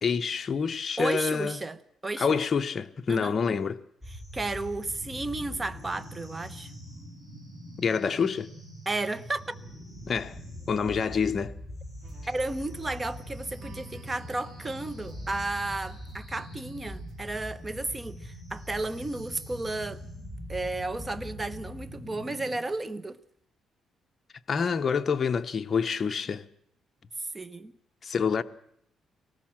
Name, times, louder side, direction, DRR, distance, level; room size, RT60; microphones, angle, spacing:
voice 1, 0.0-1.6 2.2-3.8 7.8-8.5 10.1-10.4 10.7-11.5 24.5-26.4 28.0-28.4, left 6 dB, 40° left, 0.9 m, -27 dB
voice 2, 1.0-2.4 3.1-3.3 4.1-6.7 8.8-9.6 12.3-20.0 20.5-23.2 27.2-27.7, right 2 dB, 20° right, 1.1 m, -33 dB
sound 1, 4.0-22.6, equal, 5° right, 7.9 m, -43 dB
sound 2, 12.0-17.1 17.6-18.0, right 4 dB, 60° right, 4.1 m, -52 dB
23.0 x 19.0 x 7.4 m
cardioid pair, 95°, 0 cm